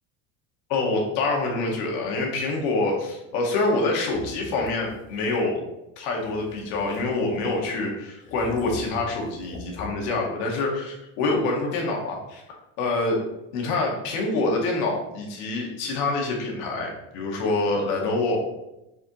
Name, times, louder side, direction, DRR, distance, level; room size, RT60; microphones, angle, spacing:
voice 1, 0.7-5.6 6.0-12.4 12.8-13.2 13.5-18.4, left 2 dB, 65° left, 0 dB, 1.9 m, -26 dB
sound 1, 4.0-5.4 6.2-7.7 8.2-10.2, left 2 dB, 25° left, 1.0 m, -42 dB
7.3 x 4.9 x 3.1 m, 0.90 s
cardioid pair, 170°, 30 cm